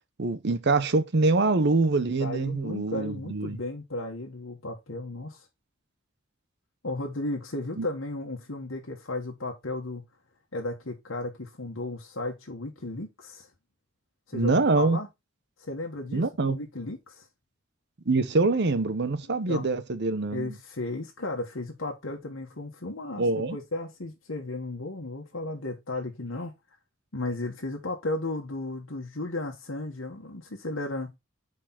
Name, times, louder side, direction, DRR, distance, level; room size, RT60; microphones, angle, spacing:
voice 1, 0.2-3.6 7.8-7.9 14.3-15.0 16.1-16.6 18.1-20.5 23.2-23.6, right 3 dB, 60° right, 0.9 m, -25 dB
voice 2, 2.2-5.5 6.8-10.0 10.5-13.5 14.3-15.1 15.6-17.3 19.5-19.7 20.3-26.5 27.1-31.1, left 2 dB, 80° left, 1.5 m, -34 dB
4.7 x 4.5 x 5.8 m
head